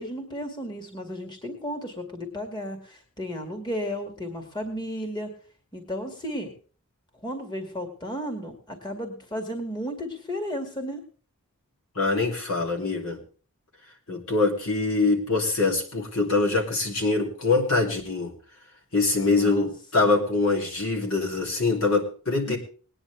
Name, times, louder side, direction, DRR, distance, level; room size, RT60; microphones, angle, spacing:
voice 1, 0.0-5.3 5.7-6.5 7.2-11.0 19.2-19.7 22.5-22.6, equal, 20° left, 4 dB, 2.1 m, -34 dB
voice 2, 11.9-13.2 14.1-18.3 18.9-22.6, left 3 dB, 70° left, 0 dB, 2.9 m, -24 dB
20.0 x 9.8 x 3.4 m, 0.40 s
head